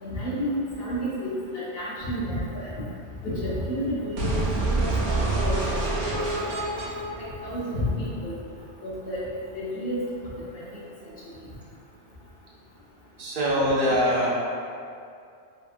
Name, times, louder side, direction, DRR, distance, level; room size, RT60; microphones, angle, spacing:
voice 1, 0.0-2.8 3.2-5.8 6.1-6.2 7.2-8.4 8.8-9.2 9.5-10.0 10.3-10.7, equal, 60° left, -8 dB, 0.8 m, -30 dB
sound 1, 4.2-8.1, right 2 dB, 90° right, 0.9 m, -27 dB
voice 2, 13.2-14.3, equal, 55° right, -6 dB, 0.7 m, -23 dB
2.8 x 2.8 x 2.4 m, 2.4 s
omnidirectional pair, 1.2 m